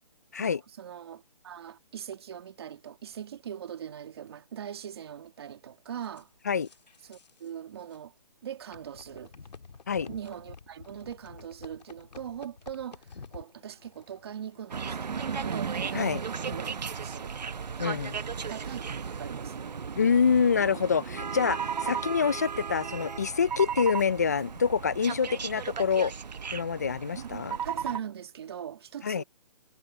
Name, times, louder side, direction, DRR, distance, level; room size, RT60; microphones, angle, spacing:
voice 1, 0.8-6.3 7.0-8.1 8.4-9.3 10.1-13.0 13.3-17.3 17.8-18.0 18.3-19.7 21.4-21.6 27.1-29.2, right 9 dB, 40° right, 2.1 m, -41 dB
sound 1, 6.0-7.5 7.8-8.0 8.7-18.0, left 5 dB, 85° left, 1.9 m, -51 dB
sound 2, 14.7-28.0, right 6 dB, 85° right, 1.0 m, -35 dB
voice 2, 17.8-18.1 20.0-26.1 26.5-27.6 29.0-29.2, left 6 dB, 25° left, 0.4 m, -26 dB
hypercardioid pair, 165°, 21 cm